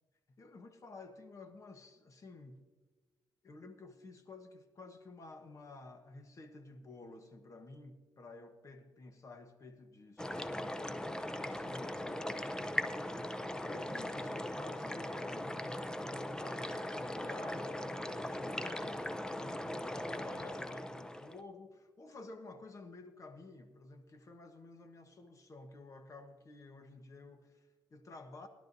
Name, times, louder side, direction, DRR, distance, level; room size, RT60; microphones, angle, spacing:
voice 1, 0.4-2.6 3.4-12.5 13.6-19.0 19.3-28.5, left 3 dB, 40° left, 6 dB, 1.2 m, -52 dB
sound 1, 10.2-21.4, left 1 dB, 10° left, 0.6 m, -39 dB
21.0 x 11.5 x 2.7 m, 1.3 s
cardioid pair, 110°, 8 cm